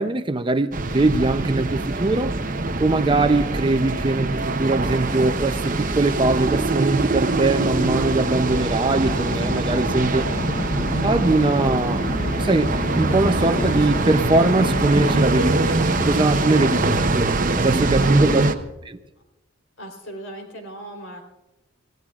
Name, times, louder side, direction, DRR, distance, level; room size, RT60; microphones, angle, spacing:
voice 1, 0.0-2.3 2.8-10.3 11.0-12.1 12.4-18.4 18.8-19.0, right 2 dB, 25° right, 0.6 m, -22 dB
sound 1, 0.7-18.5, right 2 dB, 45° right, 0.9 m, -23 dB
sound 2, 7.7-17.1, left 3 dB, 35° left, 0.4 m, -31 dB
voice 2, 17.7-18.3 19.8-21.2, right 1 dB, 70° left, 3.8 m, -37 dB
27.0 x 16.0 x 2.4 m
head